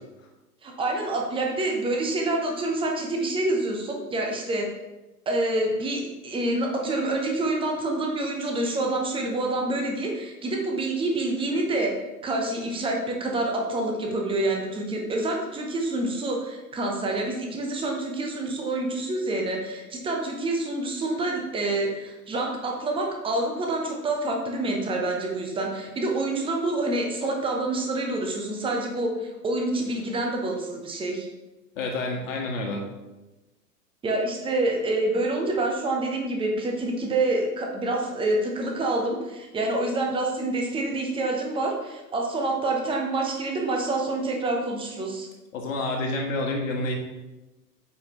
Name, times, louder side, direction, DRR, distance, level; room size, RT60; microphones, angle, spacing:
voice 1, 0.6-4.7 5.3-11.9 12.2-31.3 34.0-45.3, right 2 dB, 10° right, 1 dB, 1.0 m, -27 dB
voice 2, 31.7-32.8 45.5-47.0, left 2 dB, 50° left, 1 dB, 1.6 m, -28 dB
8.0 x 5.0 x 3.1 m, 1.1 s
figure-of-eight pair, 105°, 49 cm